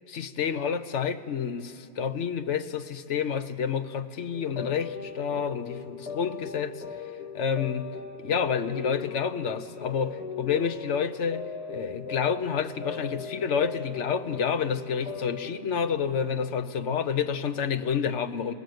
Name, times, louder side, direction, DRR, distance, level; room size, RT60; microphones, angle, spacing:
voice 1, 0.1-6.8 7.3-7.9 8.2-18.5, left 7 dB, 75° left, 11 dB, 1.2 m, -29 dB
sound 1, 4.3-15.5, left 6 dB, 30° left, 1.3 m, -39 dB
20.0 x 19.5 x 7.9 m, 2.5 s
omnidirectional pair, 1.2 m